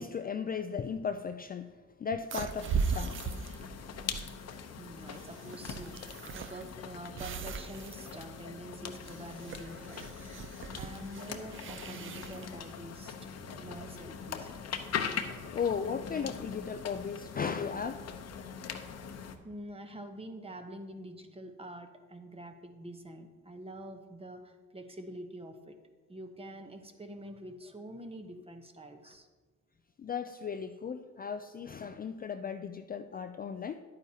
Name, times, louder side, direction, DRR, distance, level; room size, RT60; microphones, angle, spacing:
voice 1, 0.0-1.7 2.0-3.2 3.8-3.9 15.5-18.0 30.0-33.8, left 6 dB, 30° left, 8 dB, 0.4 m, -36 dB
sound 1, 2.3-14.2, right 5 dB, 45° right, 0.5 m, -39 dB
sound 2, 2.5-19.4, left 7 dB, 55° left, 0.8 m, -42 dB
voice 2, 4.8-10.0 10.8-13.2 13.6-14.9 19.4-25.8 26.1-29.3, right 1 dB, 20° right, 6 dB, 0.9 m, -46 dB
10.5 x 9.1 x 2.8 m, 1.4 s
cardioid pair, 90°, 30 cm